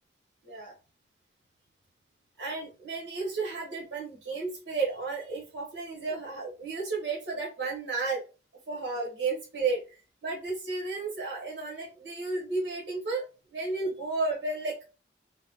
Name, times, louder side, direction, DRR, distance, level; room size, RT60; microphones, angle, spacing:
voice 1, 0.4-0.7 2.4-8.2 8.7-13.2 13.5-14.9, right 3 dB, 75° right, -4 dB, 1.2 m, -33 dB
3.0 x 2.2 x 3.6 m, 0.33 s
head